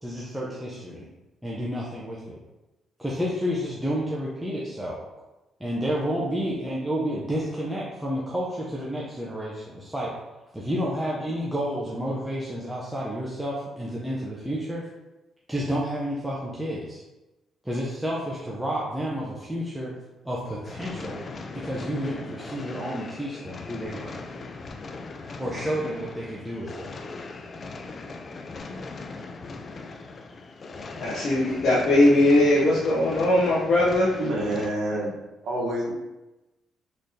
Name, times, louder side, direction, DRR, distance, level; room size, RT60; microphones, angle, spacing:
voice 1, 0.0-1.1 1.4-2.4 3.0-5.0 5.6-10.1 10.5-14.8 15.5-17.0 17.6-19.9 20.2-21.2 21.5-24.2 25.4-26.9, equal, 5° right, -6 dB, 0.7 m, -30 dB
sound 1, 20.6-34.7, left 3 dB, 45° left, 0.4 m, -39 dB
voice 2, 31.0-34.1, left 1 dB, 65° left, -7 dB, 0.8 m, -20 dB
voice 3, 34.2-35.1 35.4-35.9, right 1 dB, 75° right, -3 dB, 1.0 m, -27 dB
3.9 x 3.2 x 2.7 m, 1.0 s
cardioid pair, 90°, 0 cm